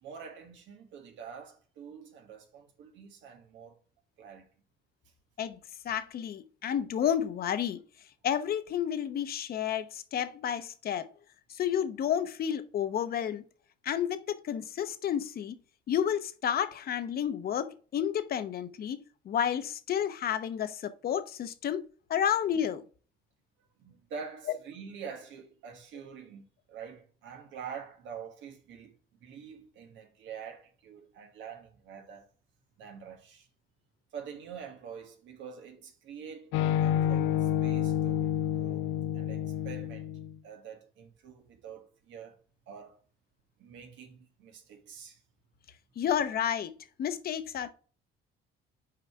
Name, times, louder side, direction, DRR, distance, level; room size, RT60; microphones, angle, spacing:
voice 1, 0.0-3.8 4.2-4.5 23.8-28.9 29.2-32.3 32.8-33.5 34.1-40.1 40.4-42.4 42.7-43.0 43.6-45.2, right 7 dB, 70° right, 1.4 m, -46 dB
voice 2, 5.8-7.8 8.2-11.1 11.5-13.4 13.8-15.6 15.9-21.8 22.1-22.8 46.0-47.7, left 9 dB, 50° left, 0.8 m, -31 dB
sound 1, 36.5-40.4, left 10 dB, 85° left, 0.5 m, -29 dB
5.8 x 4.9 x 4.7 m
cardioid pair, 120°, 20 cm